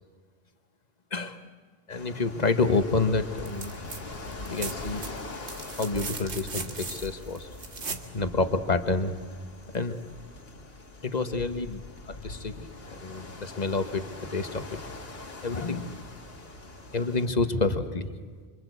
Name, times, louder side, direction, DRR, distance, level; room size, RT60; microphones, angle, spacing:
sound 1, 1.9-17.3, left 2 dB, 60° left, 2.2 m, -43 dB
voice 1, 1.9-3.8 4.5-5.1 5.8-7.5 8.1-9.1 9.7-10.0 11.0-14.8 15.4-16.1 16.9-18.1, left 3 dB, 40° left, 8 dB, 1.4 m, -28 dB
sound 2, 3.4-4.0 4.3-8.1 9.7-9.8, right 4 dB, 75° right, 1.9 m, -38 dB
26.0 x 25.5 x 8.2 m, 1.5 s
omnidirectional pair, 1.2 m